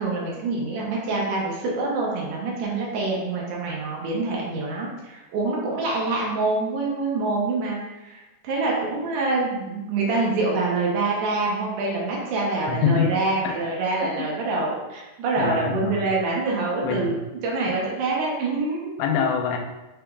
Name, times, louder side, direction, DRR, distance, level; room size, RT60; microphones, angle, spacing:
voice 1, 0.0-17.2 17.4-19.0, right 3 dB, 75° right, -3 dB, 2.2 m, -26 dB
voice 2, 12.7-13.6 15.4-16.0 16.8-17.2 17.7-17.8 19.0-19.6, left 6 dB, 90° left, 3 dB, 2.4 m, -25 dB
5.8 x 3.3 x 2.3 m, 1.0 s
omnidirectional pair, 4.1 m